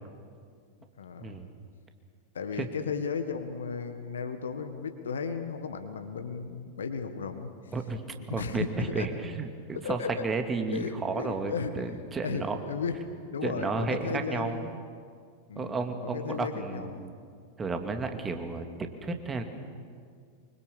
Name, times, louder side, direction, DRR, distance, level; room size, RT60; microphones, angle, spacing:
voice 1, 1.0-1.4 2.3-7.7 8.3-9.1 9.7-10.1 10.7-13.0 13.3-14.8 15.5-17.1, left 5 dB, 65° left, 7 dB, 1.7 m, -35 dB
voice 2, 8.3-12.6 13.4-14.6 15.6-17.1 17.6-19.4, right 4 dB, 15° right, 6 dB, 2.3 m, -32 dB
25.0 x 24.0 x 7.1 m, 2.1 s
figure-of-eight pair, 90°, 0 cm